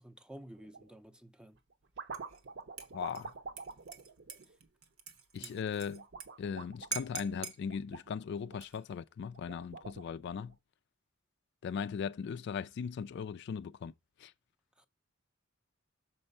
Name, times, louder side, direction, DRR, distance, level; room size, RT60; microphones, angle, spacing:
voice 1, 0.0-1.6 4.5-4.6 5.4-5.6 14.8-14.9, right 1 dB, 5° right, 0.5 m, -52 dB
sound 1, 0.6-0.9 1.5-5.1 5.9-8.6 9.2-10.5, right 4 dB, 60° right, 0.7 m, -48 dB
Dishes pots and pans / Liquid, 2.1-2.4 2.8-6.3 6.5-6.6 6.9-7.6 8.5-9.0, right 5 dB, 85° right, 1.1 m, -44 dB
voice 2, 2.9-3.3 5.3-6.0 6.4-10.5 11.6-13.9 14.2-14.3, left 6 dB, 55° left, 0.3 m, -38 dB
6.6 x 4.4 x 5.3 m
head